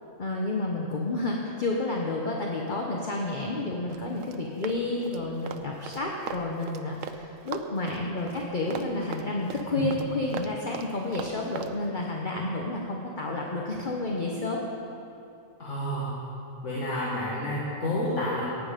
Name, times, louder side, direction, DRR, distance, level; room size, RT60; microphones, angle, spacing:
voice 1, 0.2-14.6, left 2 dB, 40° left, -1 dB, 1.1 m, -30 dB
Run, 3.9-7.2 7.5-11.7, right 8 dB, 80° right, 1.1 m, -39 dB
voice 2, 15.6-16.1 16.6-18.4, left 1 dB, 65° left, -7 dB, 2.3 m, -29 dB
16.0 x 9.7 x 5.2 m, 2.8 s
omnidirectional pair, 1.4 m